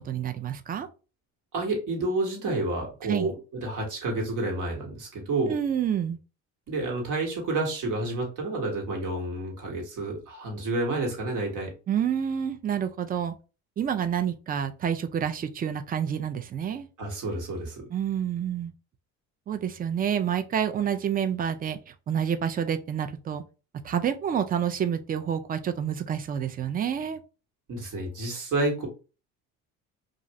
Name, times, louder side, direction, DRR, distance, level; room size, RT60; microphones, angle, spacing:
voice 1, 0.0-0.9 3.0-3.3 5.5-6.2 11.9-13.3 13.8-16.9 17.9-18.7 19.5-23.4 23.8-27.2, right 8 dB, 25° right, 0.3 m, -28 dB
voice 2, 1.5-5.6 6.7-11.7 17.0-17.9 27.7-28.9, right 2 dB, 60° right, 1.4 m, -29 dB
2.5 x 2.5 x 3.0 m
cardioid pair, 95°, 36 cm